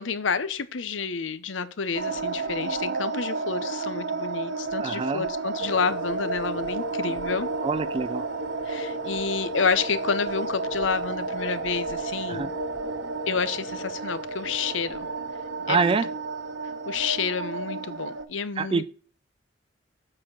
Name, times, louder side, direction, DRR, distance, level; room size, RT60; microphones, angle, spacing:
voice 1, 0.0-7.5 8.7-12.5 13.3-15.1 15.7-15.9 16.9-18.8, left 5 dB, 85° left, 0.7 m, -29 dB
sound 1, 1.9-18.3, right 4 dB, 85° right, 0.9 m, -32 dB
voice 2, 4.8-5.2 7.6-8.2 12.3-12.5 15.7-16.1 18.6-18.8, right 4 dB, 30° right, 0.3 m, -25 dB
sound 2, 5.6-17.3, left 3 dB, 40° left, 0.4 m, -40 dB
7.6 x 4.3 x 6.0 m
head